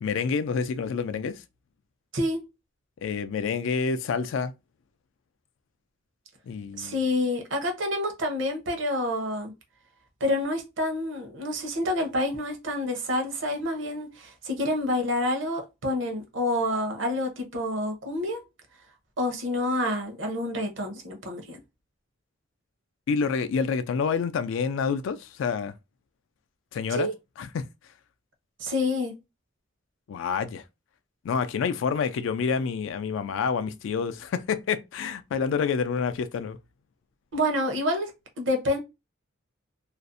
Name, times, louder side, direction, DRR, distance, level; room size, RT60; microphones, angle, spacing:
voice 1, 0.0-1.4 3.0-4.5 6.5-7.0 23.1-25.7 26.7-27.1 27.4-27.7 30.1-30.6 31.2-36.6, left 5 dB, 70° left, 0.3 m, -28 dB
voice 2, 2.1-2.5 6.8-9.5 10.2-18.4 19.2-21.6 26.9-27.1 28.6-29.1 37.3-38.1 38.4-38.8, left 1 dB, 65° right, 0.7 m, -28 dB
2.5 x 2.0 x 2.5 m
head